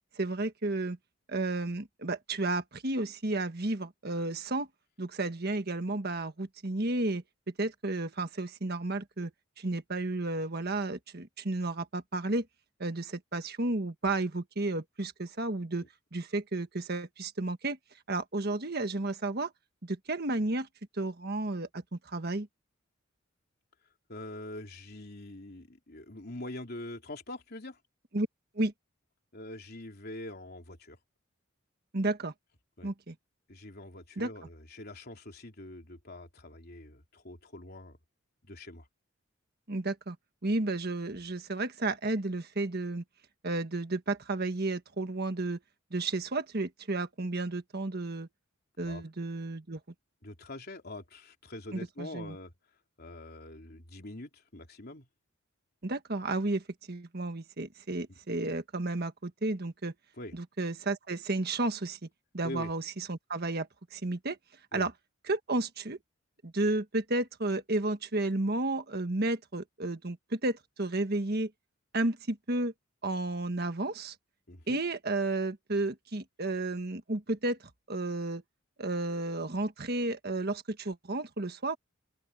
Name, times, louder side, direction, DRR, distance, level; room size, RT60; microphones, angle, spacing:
voice 1, 0.2-1.0 1.3-4.7 5.0-7.2 7.6-9.3 9.6-12.5 12.8-17.8 18.1-19.5 19.8-20.7 20.9-22.5 28.1-28.3 28.5-28.7 31.9-32.3 32.8-33.1 34.2-34.3 39.7-40.2 40.4-43.0 43.4-45.6 45.9-48.3 48.8-49.8 51.7-52.3 55.8-59.9 60.3-62.1 62.3-64.4 64.7-64.9 65.3-66.0 66.4-71.5 71.9-72.7 73.0-74.1 74.7-78.4 78.8-81.8, right 2 dB, 50° right, 1.5 m, -32 dB
voice 2, 24.1-27.8 29.3-31.0 32.8-32.9 33.5-38.0 38.4-38.9 48.8-49.0 50.2-52.5 53.0-55.1 58.1-58.2 60.2-60.4 62.4-62.7 64.7-64.9 74.5-74.8, left 1 dB, 50° left, 3.4 m, -44 dB
open air
head